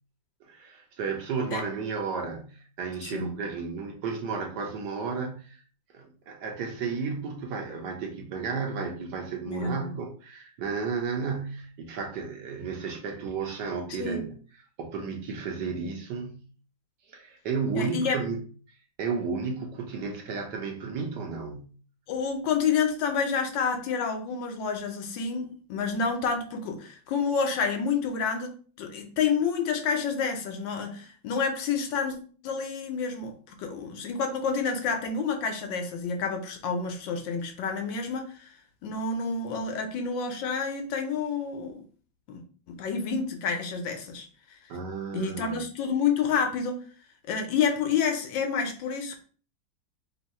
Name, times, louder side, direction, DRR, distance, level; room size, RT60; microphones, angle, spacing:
voice 1, 0.4-5.6 5.9-14.4 14.8-16.4 17.1-18.4 19.0-21.7 44.7-45.6, right 5 dB, 70° right, 3 dB, 1.4 m, -33 dB
voice 2, 9.5-9.9 14.0-14.2 17.7-18.2 22.1-32.2 32.4-38.5 38.8-41.8 42.3-44.3 45.1-46.8 47.3-49.2, left 5 dB, 75° left, 5 dB, 1.4 m, -29 dB
3.6 x 2.7 x 4.2 m, 0.40 s
omnidirectional pair, 2.1 m